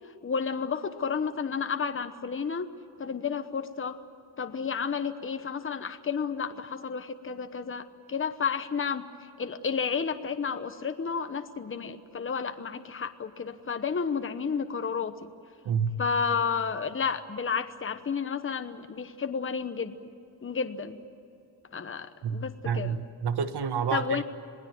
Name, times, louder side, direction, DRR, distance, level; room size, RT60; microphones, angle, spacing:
voice 1, 0.2-2.7 3.0-4.0 4.4-9.0 9.4-15.3 16.0-20.1 20.4-21.0 21.7-22.9 23.9-24.2, left 6 dB, 30° left, 1.1 m, -31 dB
voice 2, 15.6-16.0 22.2-24.2, right 6 dB, 80° right, 1.4 m, -29 dB
27.0 x 19.0 x 9.3 m
wide cardioid pair, 150°, 39 cm